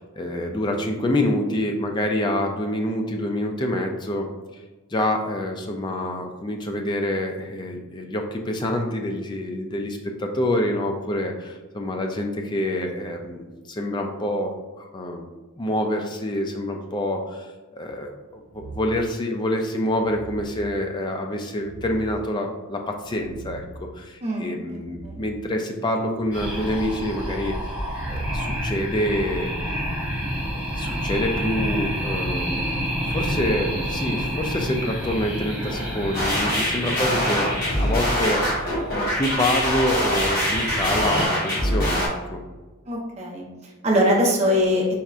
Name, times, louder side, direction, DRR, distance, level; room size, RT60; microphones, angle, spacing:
voice 1, 0.0-4.3 4.9-15.2 15.6-27.8 28.1-29.7 30.7-32.5 33.1-37.5 37.8-38.7 38.9-42.4, left 1 dB, 20° left, 3 dB, 0.3 m, -27 dB
sound 1, 18.5-19.1 19.9-20.6 21.6-22.3 22.9-23.9 24.8-25.5 25.9-26.8 27.8-30.5 31.8-32.4 33.2-33.7 34.8-36.1 36.5-36.8, right 3 dB, 65° right, 0.4 m, -41 dB
voice 2, 24.2-25.2 37.1-37.2 42.9-44.9, equal, 30° right, -2 dB, 0.7 m, -23 dB
sound 2, 26.3-41.3, equal, 10° right, 1.1 m, -29 dB
sound 3, 36.1-42.1, equal, 45° left, 1.5 m, -24 dB
4.2 x 3.4 x 2.5 m, 1.2 s
head